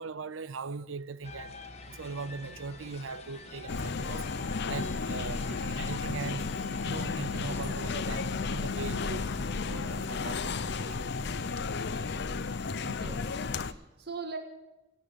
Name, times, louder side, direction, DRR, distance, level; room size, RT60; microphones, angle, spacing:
voice 1, 0.0-1.6 1.8-4.3 4.6-6.5 6.8-9.4 9.6-11.2 11.9-12.0, right 4 dB, 80° right, 0.6 m, -40 dB
sound 1, 1.2-12.1, left 3 dB, 35° left, 1.5 m, -48 dB
sound 2, 3.7-13.7, left 4 dB, 60° left, 0.7 m, -33 dB
voice 2, 12.8-14.4, right 4 dB, 55° right, 1.7 m, -41 dB
18.0 x 8.8 x 9.0 m
head